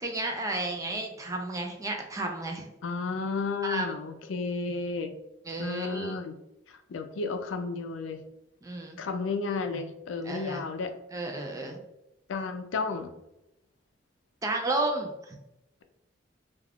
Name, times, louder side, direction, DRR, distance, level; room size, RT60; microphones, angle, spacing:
voice 1, 0.0-2.6 3.6-3.9 5.5-6.2 8.6-9.0 10.3-10.6 11.1-11.8 14.4-15.4, right 2 dB, 20° right, 2 dB, 0.4 m, -32 dB
voice 2, 2.8-5.1 5.6-6.4 6.7-8.2 9.0-10.9 12.3-13.1, left 4 dB, 90° left, 7 dB, 0.4 m, -32 dB
2.3 x 2.3 x 3.4 m, 0.86 s
head